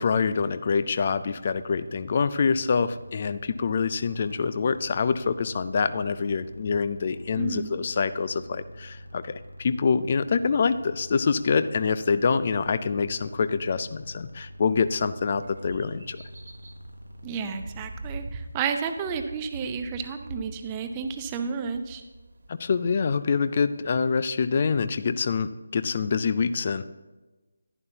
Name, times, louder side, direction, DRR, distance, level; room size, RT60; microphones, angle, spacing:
voice 1, 0.0-16.2 22.5-26.8, left 5 dB, 35° left, 13 dB, 0.4 m, -25 dB
sound 1, 1.1-17.9, equal, 90° right, 1.1 m, -46 dB
voice 2, 7.4-7.8 17.2-22.0, right 6 dB, 15° right, 6 dB, 0.5 m, -31 dB
sound 2, 14.6-24.2, right 2 dB, 50° right, 1.4 m, -44 dB
11.0 x 10.5 x 2.8 m, 1.2 s
figure-of-eight pair, 155°, 0 cm